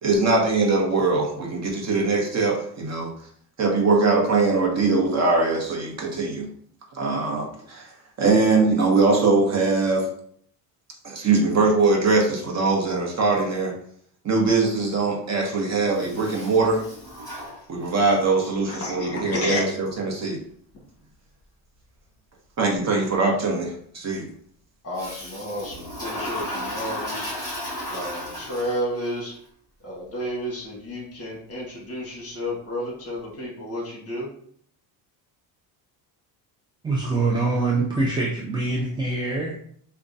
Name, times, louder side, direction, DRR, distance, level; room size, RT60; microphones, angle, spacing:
voice 1, 0.0-3.1 3.6-6.5 6.9-10.1 11.0-13.7 14.2-16.8 17.7-20.4 22.6-24.3, right 3 dB, 35° right, 0 dB, 0.8 m, -22 dB
Toilet flush, 15.9-18.2 24.9-29.1, left 1 dB, 10° left, 1.5 m, -34 dB
voice 2, 18.7-19.7 24.8-27.3 27.9-29.3 29.8-34.3, equal, 30° left, -2 dB, 1.3 m, -31 dB
voice 3, 36.8-39.6, right 3 dB, 10° right, -2 dB, 0.3 m, -24 dB
4.8 x 2.2 x 2.5 m, 0.62 s
cardioid pair, 125°, 45 cm